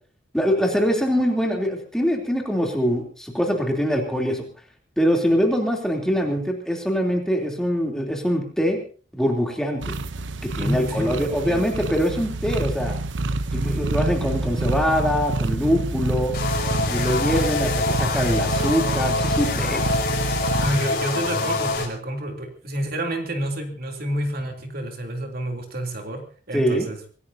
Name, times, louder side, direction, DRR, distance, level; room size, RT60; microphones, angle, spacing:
voice 1, 0.3-4.4 5.0-8.8 9.1-10.0 10.4-13.0 13.5-16.3 16.9-19.8 26.5-26.9, equal, 5° left, 1 dB, 3.2 m, -23 dB
sound 1, 9.8-20.8, right 2 dB, 75° right, 0.8 m, -27 dB
voice 2, 10.6-11.7 20.6-27.0, right 1 dB, 55° right, 3 dB, 3.2 m, -29 dB
sound 2, 16.3-21.9, left 3 dB, 55° left, 4.8 m, -25 dB
26.0 x 16.5 x 2.8 m, 0.38 s
head